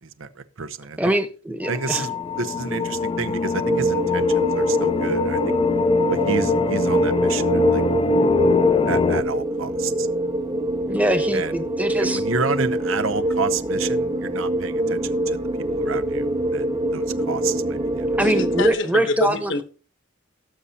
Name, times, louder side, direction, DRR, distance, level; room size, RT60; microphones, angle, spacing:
voice 1, 0.0-1.1 1.7-5.5 6.1-7.8 8.9-10.1 11.3-11.6 12.0-15.4 15.7-18.1, right 5 dB, 75° right, 0.8 m, -30 dB
voice 2, 1.0-2.0 10.9-12.2 18.2-19.5, right 1 dB, 5° right, 1.0 m, -23 dB
sound 1, 1.6-9.2, left 4 dB, 25° left, 0.5 m, -23 dB
sound 2, 3.6-18.7, right 1 dB, 25° right, 1.1 m, -24 dB
voice 3, 18.2-19.6, left 2 dB, 60° left, 1.0 m, -25 dB
17.5 x 6.8 x 2.8 m
head